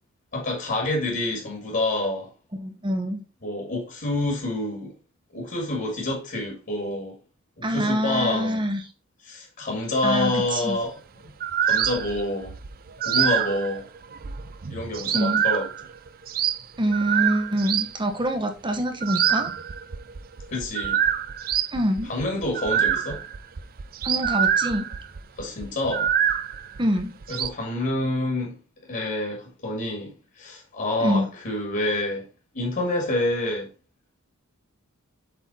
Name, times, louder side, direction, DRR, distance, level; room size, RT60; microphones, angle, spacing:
voice 1, 0.3-2.3 3.4-4.9 5.3-7.2 7.6-8.6 9.2-10.9 11.6-12.5 13.0-13.9 14.7-15.7 20.5-21.0 22.1-23.2 25.4-26.1 27.3-28.6 28.9-32.3 32.5-33.7, left 2 dB, 45° left, 2.2 m, -27 dB
voice 2, 2.6-3.2 7.6-8.8 10.0-10.8 15.1-15.4 16.8-19.5 21.7-22.1 24.0-24.9 26.8-27.1 31.0-31.3, equal, 20° right, 1.0 m, -25 dB
sound 1, 10.2-10.4 11.3-17.9 18.9-27.5, right 9 dB, 40° right, 0.5 m, -26 dB
7.8 x 4.0 x 4.2 m
head